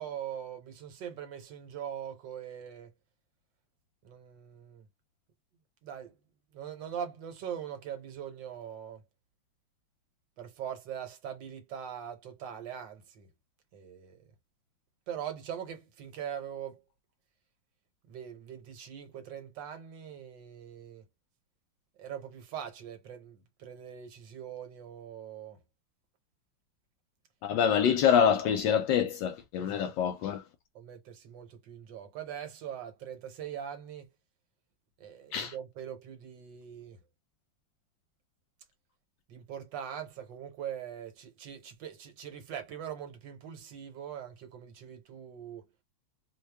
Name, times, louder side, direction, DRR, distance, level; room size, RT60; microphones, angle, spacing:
voice 1, 0.0-2.9 4.0-4.9 5.8-6.2 6.5-9.0 10.4-13.3 13.7-14.2 15.1-16.8 18.1-21.1 22.0-25.6 29.6-29.9 30.7-34.1 35.0-37.0 39.3-45.7, right 9 dB, 70° right, 1.6 m, -42 dB
voice 2, 27.4-30.4 35.3-35.5, left 8 dB, 75° left, 1.2 m, -26 dB
3.2 x 2.2 x 3.3 m
omnidirectional pair, 2.1 m